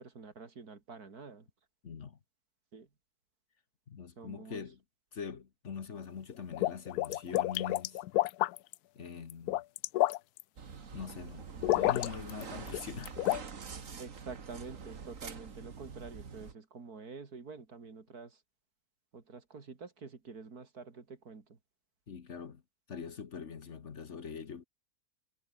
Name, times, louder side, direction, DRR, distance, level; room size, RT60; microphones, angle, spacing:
voice 1, 0.0-1.5 2.7-2.9 4.2-4.6 14.0-18.4 19.1-21.6, right 4 dB, 75° right, 3.1 m, -48 dB
voice 2, 1.8-2.2 3.9-4.8 5.1-8.0 8.9-9.6 10.9-13.2 22.1-22.6 22.9-24.6, left 6 dB, 50° left, 1.5 m, -43 dB
sound 1, 6.3-8.7 9.3-10.4 11.6-12.4 12.7-13.4, left 16 dB, 80° left, 1.1 m, -29 dB
sound 2, 10.6-16.5, right 5 dB, 55° right, 2.1 m, -46 dB
omnidirectional pair, 1.7 m